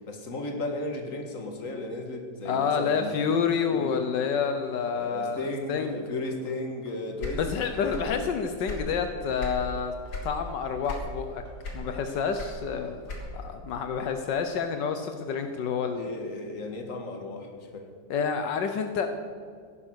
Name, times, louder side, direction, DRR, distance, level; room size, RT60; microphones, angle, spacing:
voice 1, 0.0-3.2 3.7-4.0 4.9-8.2 15.9-18.0, left 2 dB, 45° left, 4 dB, 2.2 m, -35 dB
voice 2, 2.4-5.9 7.4-9.9 10.2-11.4 11.7-13.0 13.3-16.1 18.1-19.1, left 6 dB, 80° left, 7 dB, 1.5 m, -28 dB
sound 1, 3.6-13.4, left 3 dB, 30° left, 4.9 m, -53 dB
sound 2, 7.2-8.2 8.5-9.6 10.1-10.4 10.8-11.3 11.6-13.5, left 2 dB, 65° left, 3.0 m, -36 dB
16.5 x 11.0 x 6.4 m, 2.2 s
omnidirectional pair, 1.9 m